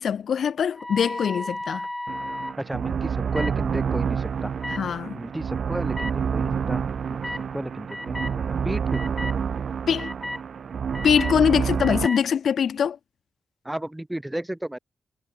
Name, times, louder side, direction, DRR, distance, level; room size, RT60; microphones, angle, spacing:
voice 1, 0.0-1.9 4.8-5.2 9.9-10.1 11.0-13.0, left 7 dB, 80° left, 0.9 m, -23 dB
sound 1, 0.7-2.5 3.3-3.5 4.6-4.8 5.9-6.1 7.2-7.4 7.9-8.3 8.9-9.3 10.0-10.4 10.9-11.4 11.8-12.2, left 1 dB, 10° left, 0.7 m, -33 dB
sound 2, 2.1-12.1, right 7 dB, 65° right, 2.5 m, -28 dB
voice 2, 2.6-4.5 5.1-6.8 7.1-7.2 7.5-9.1 13.6-14.8, right 1 dB, 5° right, 2.0 m, -33 dB
wide cardioid pair, 160°, 0 cm